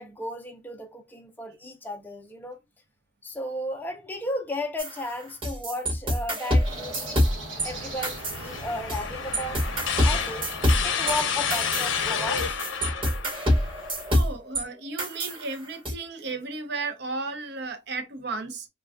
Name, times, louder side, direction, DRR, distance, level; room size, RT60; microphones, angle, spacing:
voice 1, 0.0-2.6 3.2-7.2 7.6-9.6 10.0-10.5 10.8-12.6, left 1 dB, 10° left, 0.4 m, -34 dB
sound 1, 4.8-7.7 8.0-9.1 9.3-14.6 15.0-15.9, equal, 25° right, 0.9 m, -26 dB
sound 2, 6.6-12.5, equal, 85° right, 1.0 m, -38 dB
sound 3, 7.6-14.1, left 7 dB, 75° left, 0.6 m, -31 dB
voice 2, 14.0-18.7, right 3 dB, 60° right, 0.6 m, -34 dB
3.4 x 2.2 x 2.3 m
head